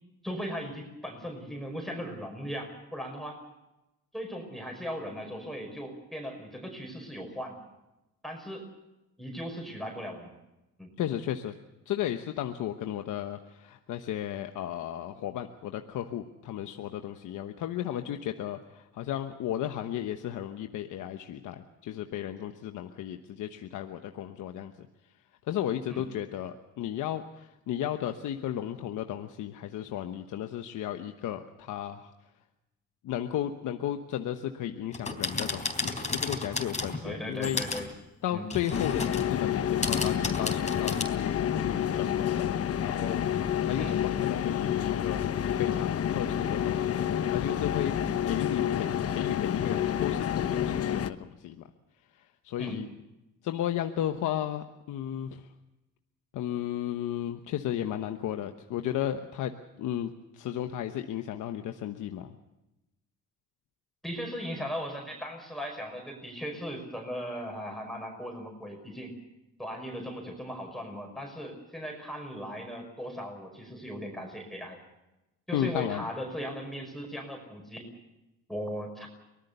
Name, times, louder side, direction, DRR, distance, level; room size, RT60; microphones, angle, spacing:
voice 1, 0.2-3.4 4.1-7.6 8.2-8.7 9.2-10.3 10.8-10.9 25.9-26.0 37.0-37.9 38.3-38.4 43.8-44.0 52.6-52.8 64.0-69.1 69.6-74.8 75.5-77.9 78.5-79.1, equal, ahead, 1 dB, 5.4 m, -38 dB
voice 2, 11.0-11.6 11.9-24.9 25.5-32.1 33.0-37.6 38.2-45.2 45.5-51.6 52.2-52.9 53.4-55.5 56.3-62.3 75.5-76.0, left 11 dB, 80° left, 6 dB, 1.1 m, -34 dB
sound 1, 34.9-37.1 37.4-37.9 38.5-39.3 39.8-41.0, left 3 dB, 25° left, 3.7 m, -33 dB
sound 2, 38.7-51.1, left 9 dB, 50° left, 1.1 m, -29 dB
24.0 x 19.0 x 6.8 m, 0.95 s
cardioid pair, 90°, 30 cm